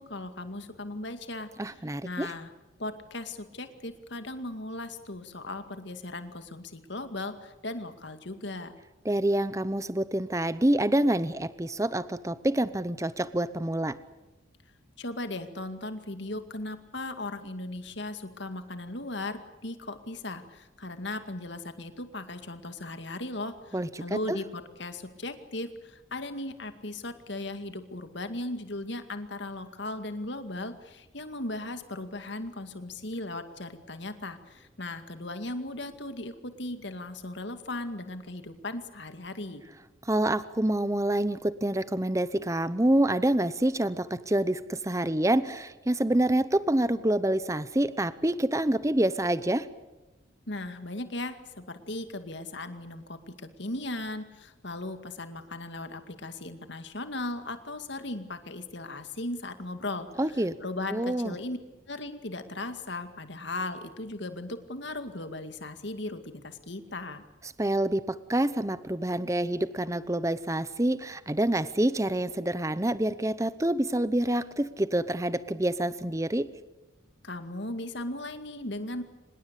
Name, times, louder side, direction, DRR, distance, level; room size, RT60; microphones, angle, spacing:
voice 1, 0.0-2.5 2.8-8.7 15.0-39.6 50.5-53.3 53.6-61.6 61.9-67.2 77.2-79.0, left 2 dB, 60° left, 9 dB, 2.2 m, -37 dB
voice 2, 1.6-2.3 9.0-14.0 23.7-24.4 40.1-49.7 60.2-60.6 60.9-61.3 67.6-76.5, right 1 dB, 15° right, 14 dB, 0.8 m, -27 dB
25.5 x 21.0 x 8.3 m, 1.1 s
head